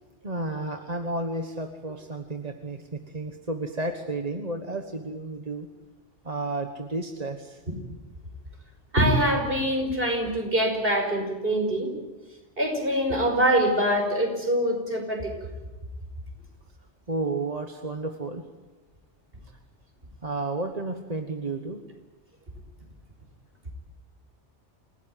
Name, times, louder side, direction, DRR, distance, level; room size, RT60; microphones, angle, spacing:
voice 1, 0.2-5.7 6.2-7.6 17.1-18.4 20.2-21.8, right 2 dB, 35° right, 5 dB, 1.5 m, -32 dB
voice 2, 8.9-11.9 12.6-15.3, equal, 50° right, 3 dB, 5.8 m, -24 dB
28.5 x 17.5 x 9.2 m, 1.2 s
omnidirectional pair, 1.2 m